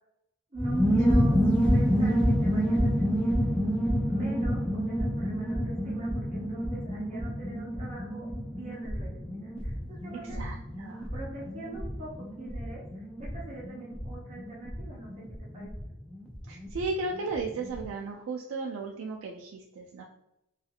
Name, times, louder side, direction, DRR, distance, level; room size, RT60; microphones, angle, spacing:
voice 1, 0.5-1.4 1.7-3.3 4.0-8.3 8.6-10.4 11.1-15.1 15.5-15.7, right 1 dB, 35° right, -5 dB, 0.6 m, -44 dB
sound 1, 0.6-16.9 17.1-17.2 17.4-17.8, equal, 5° left, 0.3 m, -28 dB
voice 2, 10.1-11.1 16.4-20.0, right 3 dB, 75° right, 1 dB, 0.3 m, -35 dB
2.4 x 2.4 x 2.7 m, 0.84 s
head